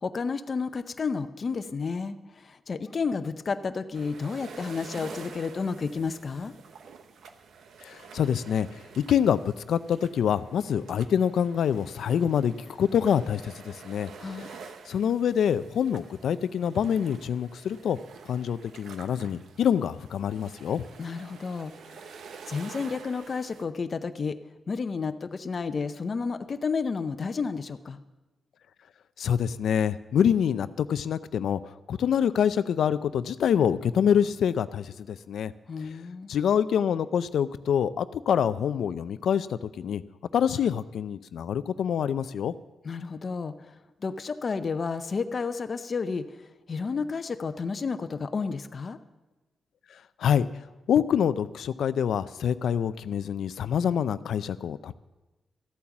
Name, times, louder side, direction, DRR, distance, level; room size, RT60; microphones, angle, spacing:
voice 1, 0.0-2.1 2.4-6.5 14.2-14.5 21.0-21.7 22.5-24.4 24.7-28.0 35.7-36.3 42.8-43.5 44.0-46.2 46.7-49.0, left 5 dB, 45° left, 9 dB, 0.7 m, -31 dB
sound 1, 3.9-23.6, right 5 dB, 90° right, 0.9 m, -48 dB
voice 2, 7.8-8.7 9.0-14.1 14.9-18.0 18.3-20.8 29.2-35.5 36.3-40.0 40.3-42.5 50.2-50.5 50.9-54.9, left 8 dB, 85° left, 14 dB, 0.4 m, -26 dB
14.0 x 8.7 x 7.1 m, 1.1 s
wide cardioid pair, 125°, 0 cm